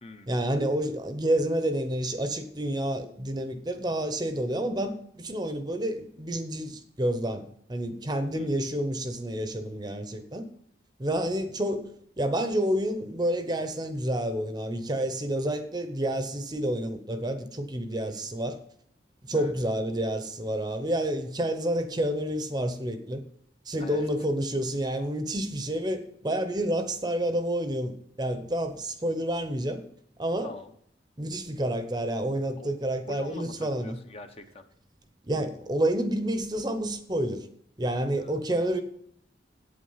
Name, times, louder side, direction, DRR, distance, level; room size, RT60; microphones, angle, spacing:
voice 1, 0.3-10.5 11.0-11.9 12.2-18.6 19.3-23.2 23.7-29.8 30.2-30.5 31.2-34.0 35.2-37.5 37.8-38.8, right 1 dB, 25° right, 0.8 m, -29 dB
voice 2, 17.9-18.3 19.3-19.5 23.8-24.1 30.4-30.7 32.6-34.6 38.2-38.4, left 2 dB, 35° left, 0.8 m, -45 dB
8.5 x 8.4 x 5.6 m
head